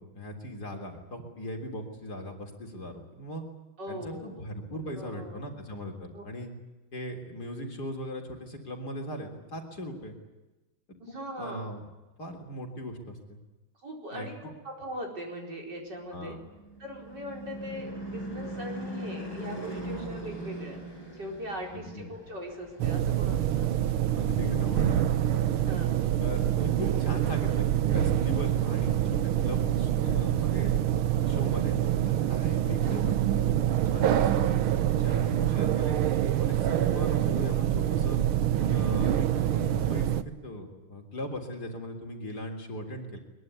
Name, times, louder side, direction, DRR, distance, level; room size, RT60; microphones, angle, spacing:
voice 1, 0.0-3.4 3.9-6.5 6.9-10.1 11.1-11.8 12.2-13.4 14.1-14.3 16.1-16.4 21.7-22.1 24.1-25.5 26.2-30.8 31.3-33.7 33.9-36.0 36.4-38.2 38.7-43.2, equal, 50° left, 3 dB, 4.1 m, -38 dB
voice 2, 3.8-4.4 4.9-5.5 6.1-6.2 11.0-11.7 13.8-16.4 16.8-20.8 21.1-23.8 25.6-26.2, equal, 55° right, 1 dB, 5.2 m, -40 dB
Car passing by / Truck / Engine, 16.1-24.8, right 1 dB, 10° left, 8.1 m, -41 dB
sound 1, 22.8-40.2, right 11 dB, 85° right, 1.9 m, -26 dB
22.5 x 22.0 x 9.6 m, 1.1 s
omnidirectional pair, 2.3 m